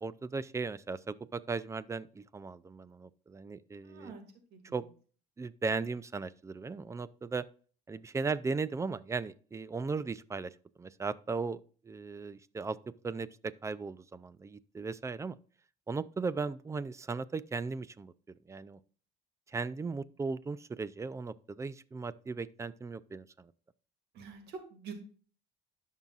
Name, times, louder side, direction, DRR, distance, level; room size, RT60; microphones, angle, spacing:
voice 1, 0.0-4.1 4.7-4.9 5.4-7.4 7.9-15.4 15.9-18.8 19.5-23.5, right 4 dB, 15° right, 0.4 m, -37 dB
voice 2, 3.8-4.2 4.5-4.6 24.1-24.9, right 5 dB, 75° right, 2.0 m, -45 dB
13.0 x 5.6 x 2.4 m
cardioid pair, 110°, 17 cm